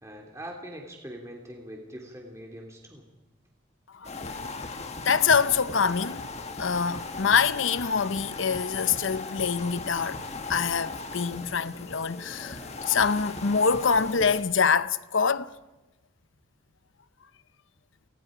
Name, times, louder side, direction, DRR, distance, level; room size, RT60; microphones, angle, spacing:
voice 1, 0.0-3.0, equal, 15° right, 2.8 m, -42 dB
voice 2, 3.9-4.6 5.0-6.3 6.6-10.2 10.5-12.6 12.9-15.5, left 6 dB, 70° left, 0.8 m, -25 dB
sound 1, 4.0-14.4, left 3 dB, 30° left, 1.6 m, -38 dB
29.5 x 19.5 x 5.0 m
head